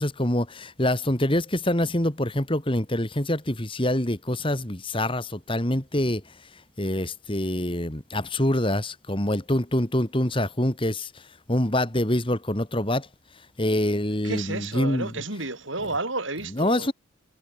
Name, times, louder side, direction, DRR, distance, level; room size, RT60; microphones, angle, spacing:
voice 1, 0.0-13.1 13.6-15.2 16.5-16.9, left 1 dB, 25° left, 2.3 m, -25 dB
voice 2, 14.2-16.9, right 2 dB, 65° right, 7.6 m, -31 dB
head